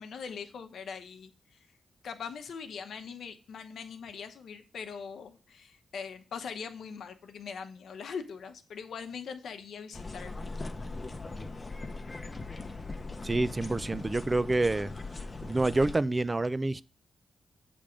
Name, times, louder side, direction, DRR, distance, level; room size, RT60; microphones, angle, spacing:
voice 1, 0.0-1.7 2.0-10.3, left 6 dB, 80° left, 0.8 m, -41 dB
sound 1, 9.9-16.0, left 3 dB, 30° left, 0.7 m, -40 dB
voice 2, 13.2-14.9 15.4-16.8, right 2 dB, 25° right, 0.3 m, -27 dB
7.4 x 3.4 x 5.0 m
cardioid pair, 85°, 0 cm